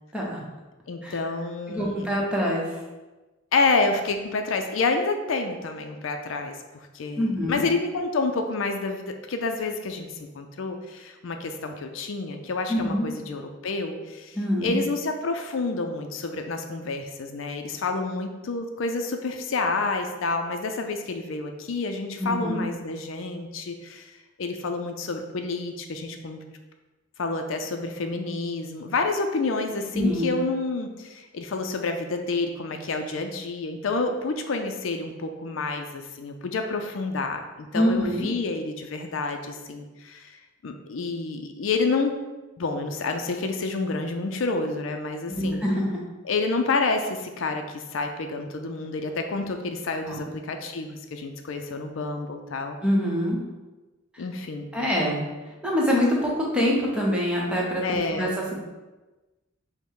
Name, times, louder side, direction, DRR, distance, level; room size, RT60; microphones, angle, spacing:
voice 1, 0.9-2.1 3.5-6.5 6.9-14.4 14.6-24.1 24.4-26.4 27.2-42.1 42.6-45.6 46.2-52.8 54.2-54.7 57.8-58.3, left 3 dB, 75° left, 5 dB, 0.5 m, -29 dB
voice 2, 1.7-2.8 7.2-7.6 12.7-13.1 14.3-14.8 22.2-22.7 29.9-30.4 37.7-38.3 45.3-46.0 50.0-50.2 52.8-53.4 54.1-54.2 54.7-58.5, equal, 5° right, -4 dB, 0.9 m, -25 dB
5.3 x 2.1 x 4.7 m, 1.1 s
head